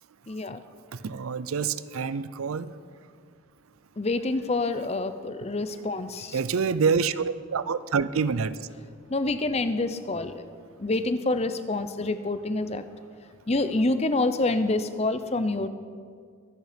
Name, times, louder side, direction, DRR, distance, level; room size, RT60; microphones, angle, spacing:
voice 1, 0.3-0.6 4.0-6.4 9.1-10.3 10.8-12.8 13.5-15.7, left 2 dB, 30° left, 11 dB, 0.6 m, -27 dB
voice 2, 1.0-2.7 6.3-8.5, right 5 dB, 80° right, 16 dB, 0.5 m, -26 dB
23.5 x 9.3 x 5.2 m, 2.1 s
head